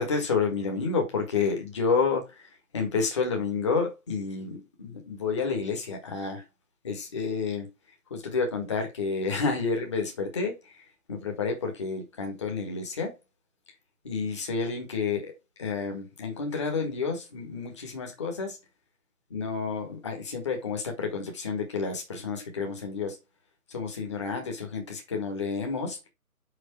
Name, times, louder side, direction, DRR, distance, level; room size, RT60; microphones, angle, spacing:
voice 1, 0.0-2.5 2.7-6.4 6.8-7.7 8.1-10.8 11.1-13.1 14.0-15.3 15.6-18.6 19.3-23.2 23.7-26.0, left 4 dB, 20° left, 1.7 m, -30 dB
6.6 x 5.9 x 4.4 m
figure-of-eight pair, 155°, 44 cm